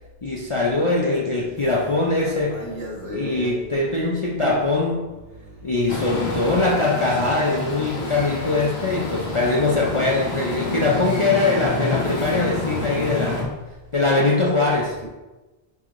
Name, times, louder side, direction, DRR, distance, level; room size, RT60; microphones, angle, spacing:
voice 1, 0.2-2.6 3.0-5.1 5.6-13.5 13.9-15.0, left 2 dB, 35° left, -2 dB, 0.6 m, -22 dB
voice 2, 2.5-3.6 4.4-4.5 5.3-5.7 13.3-13.4, equal, 75° right, -2 dB, 1.7 m, -34 dB
sound 1, 5.9-13.4, left 2 dB, 90° left, 1.6 m, -28 dB
9.4 x 4.6 x 2.5 m, 1.1 s
omnidirectional pair, 1.0 m